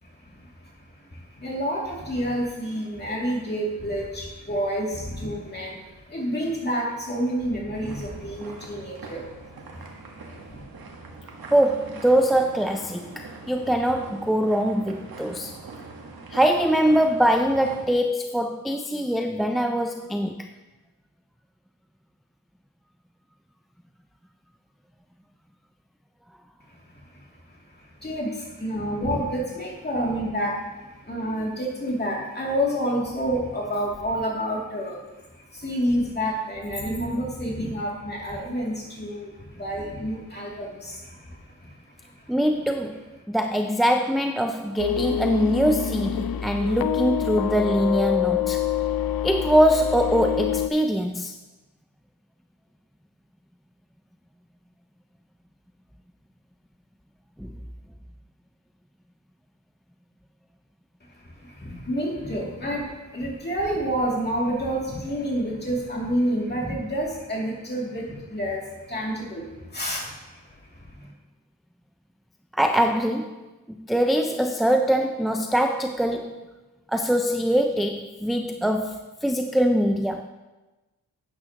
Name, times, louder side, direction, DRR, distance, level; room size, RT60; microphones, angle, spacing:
voice 1, 0.0-10.6 26.7-42.3 61.1-71.1, equal, 30° left, -3 dB, 2.5 m, -29 dB
sound 1, 7.7-17.9, right 3 dB, 75° right, 1.4 m, -42 dB
voice 2, 11.5-15.5 16.3-20.5 42.3-48.7 49.2-51.3 57.4-57.5 72.5-73.4 73.7-76.4 76.9-80.3, equal, ahead, 5 dB, 0.3 m, -23 dB
sound 2, 44.8-50.7, left 10 dB, 75° left, 0.5 m, -26 dB
11.5 x 8.8 x 2.9 m, 1.1 s
wide cardioid pair, 130°, 36 cm